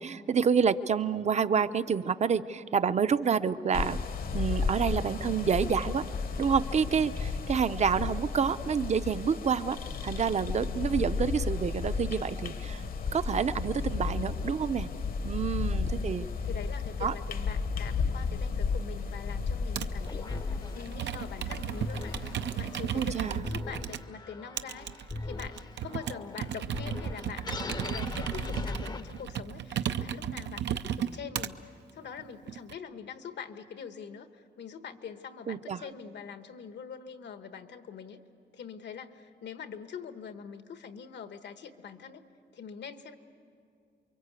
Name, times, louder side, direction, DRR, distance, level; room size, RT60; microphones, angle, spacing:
voice 1, 0.0-4.0 4.3-6.1 6.4-12.8 13.1-14.9 15.2-16.3 17.0-17.1 22.9-23.4 30.6-31.2 35.5-35.8, right 6 dB, 40° right, 13 dB, 0.6 m, -28 dB
sound 1, 3.7-23.4, left 5 dB, 55° left, 1.0 m, -34 dB
voice 2, 16.5-38.2 38.5-42.2 42.5-43.2, left 7 dB, 75° left, 9 dB, 1.3 m, -44 dB
Computer keyboard, 19.7-20.0 20.8-24.0 24.6-31.5 32.2-32.7, right 9 dB, 85° right, 0.7 m, -34 dB
sound 2, 20.1-29.5, left 3 dB, 25° left, 0.6 m, -40 dB
29.0 x 23.5 x 8.3 m, 2.5 s
wide cardioid pair, 155°, 18 cm